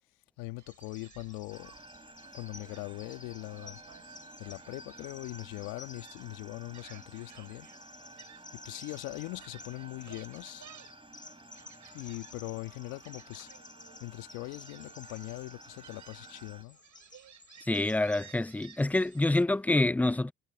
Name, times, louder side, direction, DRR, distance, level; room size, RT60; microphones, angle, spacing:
voice 1, 0.4-1.7 2.3-3.8 4.4-7.7 8.5-10.7 11.9-13.5 14.0-16.8, left 23 dB, 80° left, 1.7 m, -41 dB
Gull seagull, 0.6-19.7, right 10 dB, 60° right, 6.8 m, -58 dB
Bird vocalization bird call bird song, 0.7-19.4, left 4 dB, 20° left, 2.0 m, -54 dB
sound 1, 1.5-16.6, right 2 dB, 15° right, 4.6 m, -53 dB
voice 2, 17.7-20.3, left 2 dB, 5° left, 0.4 m, -27 dB
hypercardioid pair, 60°, 34 cm